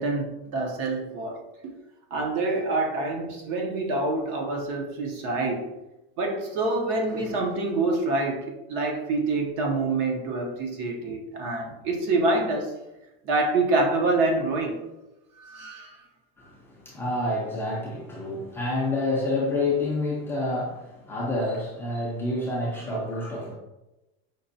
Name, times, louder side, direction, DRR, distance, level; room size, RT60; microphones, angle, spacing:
voice 1, 0.0-1.4 2.1-5.7 6.2-12.7 13.2-14.8 15.4-15.9, right 2 dB, 40° right, 1 dB, 0.6 m, -26 dB
voice 2, 16.4-23.5, left 2 dB, 5° left, -6 dB, 0.5 m, -28 dB
5.2 x 2.0 x 2.6 m, 0.97 s
supercardioid pair, 160°, 31 cm